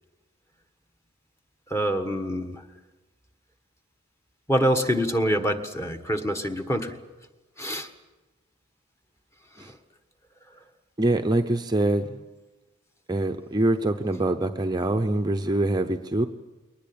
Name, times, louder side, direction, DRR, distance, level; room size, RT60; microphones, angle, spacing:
voice 1, 1.7-2.6 4.5-7.0 7.6-7.9 9.6-9.8, equal, 15° left, 5 dB, 1.5 m, -26 dB
voice 2, 11.0-12.2 13.1-16.3, right 1 dB, 20° right, 5 dB, 0.8 m, -24 dB
22.5 x 19.0 x 8.8 m, 1.2 s
head